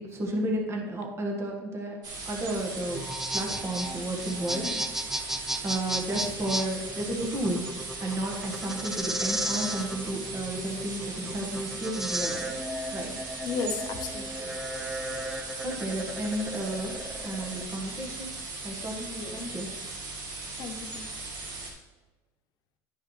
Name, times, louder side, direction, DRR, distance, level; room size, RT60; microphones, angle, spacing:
voice 1, 0.0-2.0 2.2-3.0 3.3-7.6 8.0-12.5 12.9-13.1 15.6-16.9 17.2-18.4 18.6-19.7, right 1 dB, 30° right, 1 dB, 1.6 m, -32 dB
sound 1, 2.0-21.7, right 3 dB, 50° right, 2.0 m, -38 dB
sound 2, 2.9-17.6, right 1 dB, 5° right, 0.5 m, -34 dB
voice 2, 13.4-14.5 15.1-15.3 19.2-19.4 20.6-21.3, left 5 dB, 50° left, 5 dB, 1.0 m, -36 dB
10.5 x 5.6 x 3.3 m, 1.2 s
supercardioid pair, 115°, 9 cm